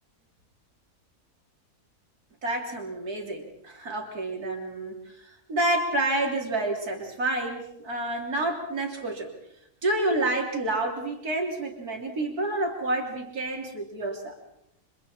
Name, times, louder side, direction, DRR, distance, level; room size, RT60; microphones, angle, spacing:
voice 1, 2.4-9.3 9.8-14.3, right 2 dB, 85° right, 1 dB, 3.7 m, -29 dB
29.5 x 25.5 x 4.3 m, 0.79 s
omnidirectional pair, 1.6 m